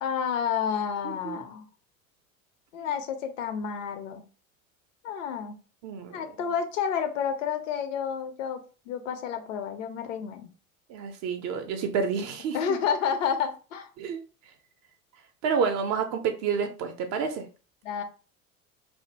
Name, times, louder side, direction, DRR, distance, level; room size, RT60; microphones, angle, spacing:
voice 1, 0.0-1.6 2.7-4.2 5.0-5.6 6.1-10.5 12.5-13.9 17.8-18.0, left 7 dB, 60° left, 0.6 m, -30 dB
voice 2, 1.0-1.4 2.8-2.9 5.8-6.5 10.9-12.8 14.0-14.2 15.4-17.5, right 6 dB, 40° right, 0.5 m, -29 dB
2.6 x 2.0 x 2.9 m
figure-of-eight pair, 70°, 43 cm